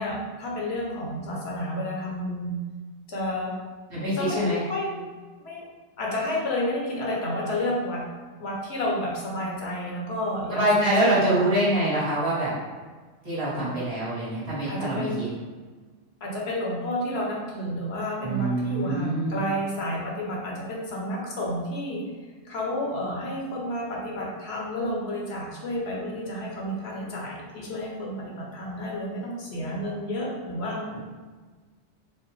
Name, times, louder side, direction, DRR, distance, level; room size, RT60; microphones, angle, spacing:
voice 1, 0.0-2.5 3.1-3.6 4.1-4.9 5.4-5.7 6.0-8.0 8.4-11.5 14.7-15.3 16.2-22.0 22.4-31.0, left 1 dB, 60° left, -3 dB, 1.0 m, -30 dB
voice 2, 3.9-4.6 10.5-12.5 13.2-15.3 18.2-19.4, right 1 dB, 50° right, -10 dB, 1.8 m, -25 dB
4.5 x 2.1 x 3.2 m, 1.4 s
omnidirectional pair, 1.3 m